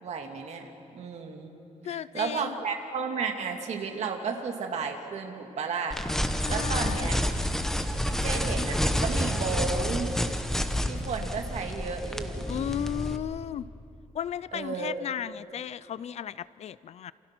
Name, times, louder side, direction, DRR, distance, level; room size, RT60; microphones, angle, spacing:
voice 1, 0.0-1.6 1.9-6.0 6.5-7.2 8.0-10.1 10.9-12.6 14.5-15.1, right 5 dB, 60° right, 4 dB, 2.4 m, -33 dB
voice 2, 1.8-2.6 6.4-7.2 12.5-13.7 14.1-17.1, left 10 dB, 55° left, 18 dB, 0.5 m, -35 dB
sound 1, 5.9-13.2, equal, 5° left, 1.0 m, -29 dB
28.5 x 28.0 x 6.1 m, 2.8 s
wide cardioid pair, 170°, 13 cm